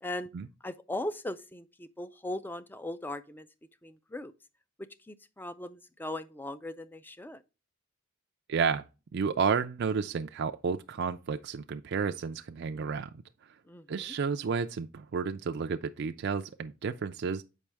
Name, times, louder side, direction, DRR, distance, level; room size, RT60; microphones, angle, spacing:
voice 1, 0.6-3.5 3.8-4.3 4.8-7.4 13.6-14.2, left 1 dB, 10° left, 0.4 m, -39 dB
voice 2, 8.5-8.8 9.1-13.1 13.9-17.4, right 5 dB, 55° right, 0.4 m, -31 dB
7.3 x 5.3 x 3.3 m
head